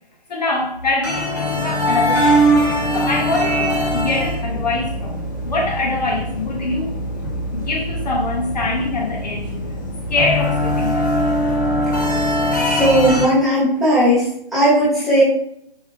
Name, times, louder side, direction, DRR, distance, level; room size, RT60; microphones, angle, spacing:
voice 1, 0.3-2.7 2.9-7.0 7.5-9.6 10.1-11.1, left 2 dB, 45° left, 0.8 m, -24 dB
sound 1, 1.0-13.3, equal, 20° left, 0.4 m, -21 dB
voice 2, 12.7-14.3 14.5-15.2, right 1 dB, ahead, 1.0 m, -16 dB
4.8 x 3.1 x 3.3 m
hypercardioid pair, 160°, 30 cm